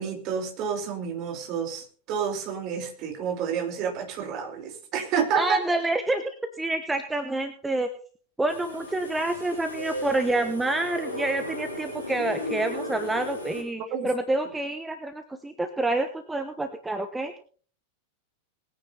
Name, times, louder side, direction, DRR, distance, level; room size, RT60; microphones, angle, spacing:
voice 1, 0.0-5.6 13.9-14.1, right 7 dB, 40° right, 5 dB, 2.8 m, -29 dB
voice 2, 5.4-6.2 6.6-7.9 8.4-17.3, right 2 dB, 10° right, 8 dB, 1.1 m, -28 dB
sound 1, 8.5-13.6, left 1 dB, 90° right, 3.1 m, -35 dB
20.0 x 9.3 x 4.1 m, 0.42 s
figure-of-eight pair, 90°, 0 cm